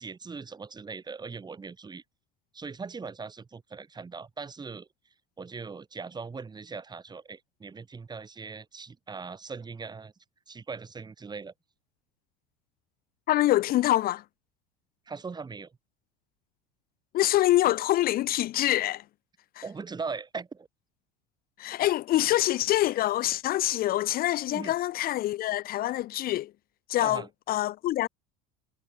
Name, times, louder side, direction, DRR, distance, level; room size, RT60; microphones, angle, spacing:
voice 1, 0.0-2.0 2.5-4.9 5.4-10.1 10.5-11.5 15.1-15.8 19.6-20.7 24.5-24.7 27.0-27.3, right 4 dB, 20° right, 4.8 m, -40 dB
voice 2, 13.3-14.2 17.1-19.0 21.6-26.5 26.9-27.2 27.5-28.1, left 15 dB, 50° left, 0.9 m, -25 dB
supercardioid pair, 95°, 20 cm